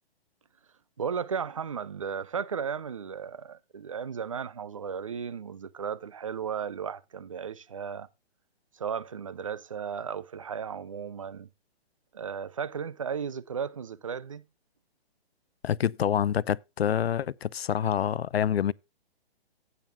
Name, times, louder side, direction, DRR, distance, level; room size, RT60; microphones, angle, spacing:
voice 1, 1.0-8.1 8.7-11.5 12.1-14.4, right 7 dB, 30° right, 0.5 m, -35 dB
voice 2, 15.6-18.7, left 9 dB, 70° left, 0.6 m, -27 dB
15.5 x 9.3 x 2.3 m
hypercardioid pair, 170°, 32 cm